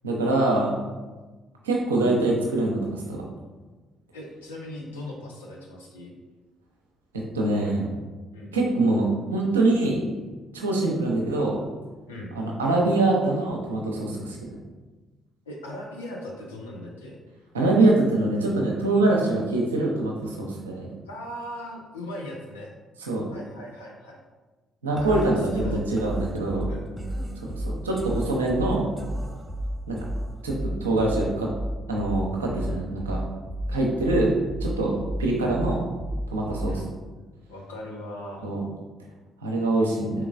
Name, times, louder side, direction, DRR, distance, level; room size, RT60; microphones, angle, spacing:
voice 1, 0.0-0.8 1.6-3.2 7.3-7.9 8.5-10.0 10.5-11.6 12.4-14.4 17.5-20.9 23.0-23.3 24.8-26.7 27.4-28.9 29.9-30.0 30.4-31.5 31.9-33.2 33.7-34.3 34.6-34.9 35.2-35.8 36.3-36.8 38.4-38.6 39.4-40.1, right 2 dB, 80° right, -1 dB, 0.6 m, -24 dB
voice 2, 4.1-6.1 8.3-8.6 12.1-12.4 15.5-17.2 21.1-22.7 23.3-24.2 25.0-25.8 26.7-27.2 36.7-36.9 37.5-38.4, left 1 dB, 80° left, -2 dB, 0.5 m, -39 dB
sound 1, 25.0-37.0, equal, 10° right, 0.5 m, -33 dB
4.5 x 3.8 x 2.4 m, 1.3 s
figure-of-eight pair, 45°, 0 cm